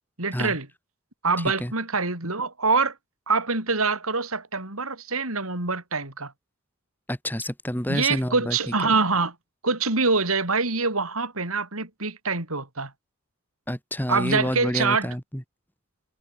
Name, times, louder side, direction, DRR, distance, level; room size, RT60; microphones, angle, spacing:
voice 1, 0.2-0.7 1.2-3.0 3.3-6.3 7.9-9.3 9.6-12.9 14.1-15.1, right 4 dB, 85° right, 5.6 m, -25 dB
voice 2, 7.1-8.9 13.7-15.4, equal, 10° left, 3.8 m, -29 dB
head